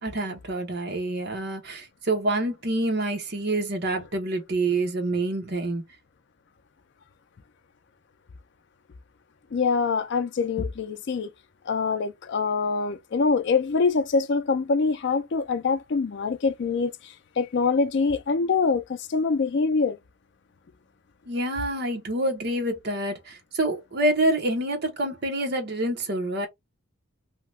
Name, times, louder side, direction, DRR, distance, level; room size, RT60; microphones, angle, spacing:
voice 1, 0.0-5.8 21.3-26.5, right 1 dB, 50° right, 0.9 m, -27 dB
voice 2, 9.5-11.3 11.7-20.0, left 4 dB, 55° left, 0.4 m, -24 dB
2.8 x 2.2 x 3.2 m
head